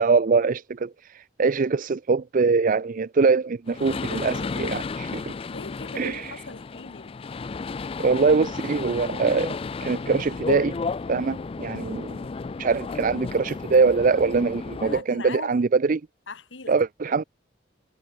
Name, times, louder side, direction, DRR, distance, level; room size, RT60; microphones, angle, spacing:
voice 1, 0.0-5.3 6.0-6.3 8.0-10.8 11.1-12.2 12.6-16.0 16.7-17.2, right 4 dB, 45° right, 0.5 m, -23 dB
sound 1, 3.7-15.0, left 4 dB, 30° left, 0.4 m, -33 dB
voice 2, 5.5-7.2 14.8-15.6 16.3-16.7, left 3 dB, 75° left, 2.0 m, -39 dB
head